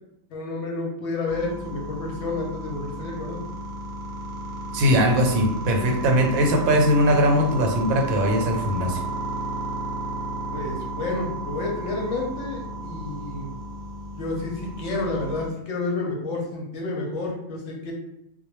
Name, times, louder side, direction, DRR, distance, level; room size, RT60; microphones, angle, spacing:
voice 1, 0.3-3.4 10.5-13.5 14.1-17.9, left 3 dB, 65° left, -1 dB, 0.8 m, -30 dB
sound 1, 1.3-15.5, right 1 dB, 60° right, 0.7 m, -33 dB
voice 2, 4.7-9.0, equal, 85° right, 2 dB, 1.0 m, -20 dB
2.3 x 2.1 x 3.0 m, 0.79 s
omnidirectional pair, 1.4 m